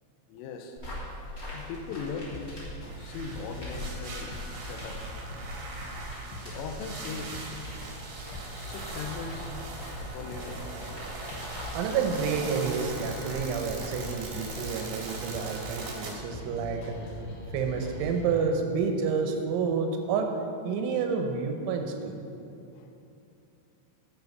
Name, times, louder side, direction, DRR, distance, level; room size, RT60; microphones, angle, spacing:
voice 1, 0.3-0.8 1.5-2.6 3.0-4.3 4.6-5.2 6.4-7.4 8.6-9.6 10.1-10.7 22.7-22.9, left 5 dB, 85° left, 5 dB, 3.4 m, -39 dB
sound 1, 0.8-14.7, left 1 dB, 25° left, 2.0 m, -44 dB
sound 2, 1.9-18.3, left 1 dB, 70° left, 2.2 m, -42 dB
sound 3, 2.8-16.1, right 3 dB, 60° right, 2.6 m, -41 dB
voice 2, 11.7-16.9 17.5-20.3 20.6-22.1, right 5 dB, 80° right, 4 dB, 3.0 m, -29 dB
10.5 x 8.2 x 5.4 m, 2.7 s
omnidirectional pair, 5.8 m